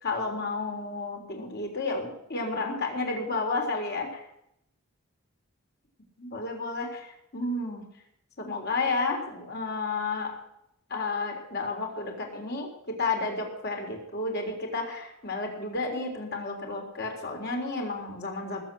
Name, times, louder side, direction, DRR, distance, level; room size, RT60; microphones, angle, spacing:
voice 1, 0.0-4.2 6.2-7.8 8.4-10.3 10.9-18.6, left 3 dB, 55° left, 2 dB, 3.7 m, -31 dB
19.5 x 7.7 x 7.7 m, 0.78 s
head